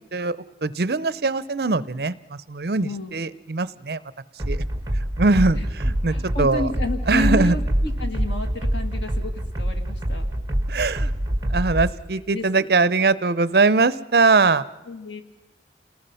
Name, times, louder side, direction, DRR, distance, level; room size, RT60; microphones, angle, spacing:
voice 1, 0.1-4.0 4.5-4.6 5.2-6.7 7.1-7.5 10.7-11.1 11.5-14.7, right 3 dB, 60° right, 17 dB, 0.6 m, -21 dB
voice 2, 2.8-3.2 5.5-5.7 6.1-10.3 12.3-12.7 14.9-15.2, left 2 dB, 90° left, 5 dB, 2.3 m, -31 dB
sound 1, 4.4-11.9, equal, 20° right, 1.7 m, -25 dB
29.0 x 19.5 x 5.7 m, 1.0 s
head